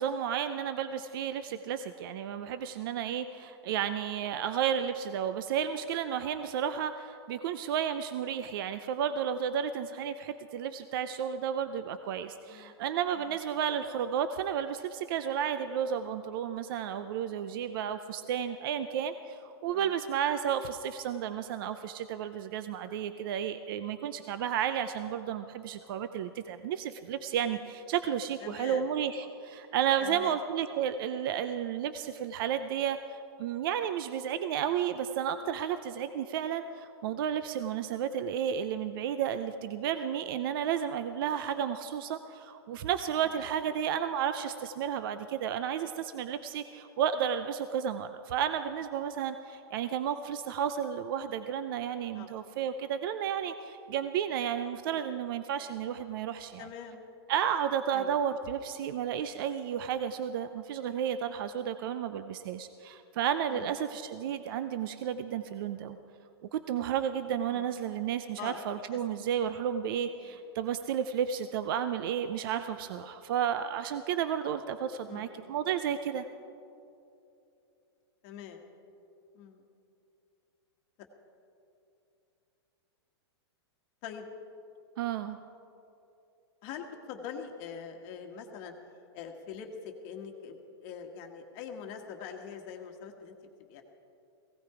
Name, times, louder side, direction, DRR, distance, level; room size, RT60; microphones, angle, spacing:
voice 1, 0.0-56.7 57.3-66.0 66.5-76.3 85.0-85.4, right 9 dB, 55° right, 10 dB, 0.6 m, -32 dB
voice 2, 28.4-28.9 30.0-30.4 52.1-52.3 56.6-57.0 57.9-58.2 63.5-63.7 67.5-67.7 68.4-68.6 68.9-69.0 70.2-70.3 75.1-75.5 78.2-78.7 79.3-79.7 84.0-84.3 86.6-88.7 89.1-93.3 93.7-93.8, left 7 dB, 40° left, 3 dB, 1.4 m, -44 dB
17.0 x 16.0 x 4.9 m, 2.7 s
hypercardioid pair, 150°, 14 cm